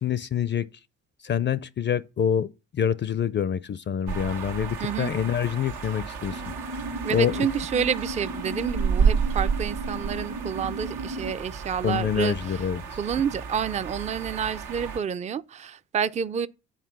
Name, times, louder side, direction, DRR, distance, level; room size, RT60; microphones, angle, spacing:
voice 1, 0.0-0.7 1.2-2.5 2.7-6.8 7.1-7.5 11.8-12.8, left 8 dB, 40° left, 0.4 m, -26 dB
sound 1, 4.1-15.0, right 6 dB, 90° right, 1.2 m, -31 dB
voice 2, 4.8-5.1 7.0-12.6 13.0-16.5, right 7 dB, 25° right, 0.4 m, -29 dB
sound 2, 6.3-11.3, right 1 dB, 40° right, 0.8 m, -36 dB
8.2 x 4.4 x 5.8 m
cardioid pair, 90°, 30 cm